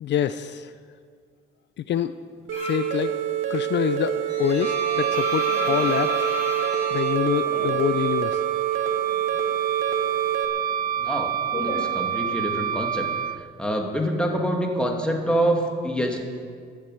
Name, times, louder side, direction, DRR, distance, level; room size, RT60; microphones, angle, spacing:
voice 1, 0.0-0.7 1.8-2.1 2.6-3.2 3.5-6.3 6.9-8.4, left 10 dB, 65° left, 12 dB, 0.5 m, -26 dB
sound 1, 2.5-3.0 3.3-8.2 8.4-9.5 9.8-12.6, left 2 dB, 30° left, 4.8 m, -34 dB
sound 2, 2.5-10.5, right 10 dB, 85° right, 1.5 m, -27 dB
Wind instrument woodwind instrument, 4.6-13.4, right 9 dB, 45° right, 0.5 m, -27 dB
voice 2, 11.0-11.3 11.6-13.1 13.4-16.2, right 1 dB, 5° left, 1 dB, 2.5 m, -26 dB
12.0 x 10.0 x 9.3 m, 2.1 s
cardioid pair, 90°, 20 cm